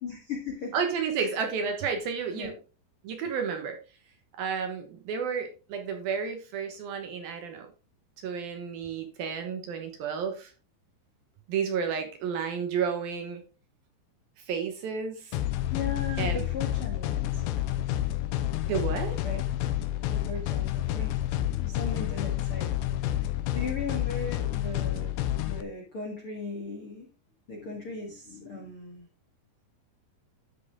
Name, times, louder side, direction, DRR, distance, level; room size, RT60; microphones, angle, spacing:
voice 1, 0.0-0.7 1.2-1.3 2.3-2.5 15.7-17.4 19.2-19.6 20.1-21.1 21.5-22.7 23.5-25.1 25.4-27.1 27.5-29.1, left 4 dB, 50° left, -1 dB, 1.8 m, -37 dB
voice 2, 0.7-2.5 3.0-3.8 4.4-7.7 8.2-10.5 11.5-13.4 14.4-15.4 16.2-16.5 18.7-19.2, right 6 dB, 70° right, 5 dB, 2.6 m, -31 dB
sound 1, 15.3-25.6, left 13 dB, 85° left, 2.9 m, -29 dB
13.0 x 6.3 x 3.6 m, 0.34 s
omnidirectional pair, 5.1 m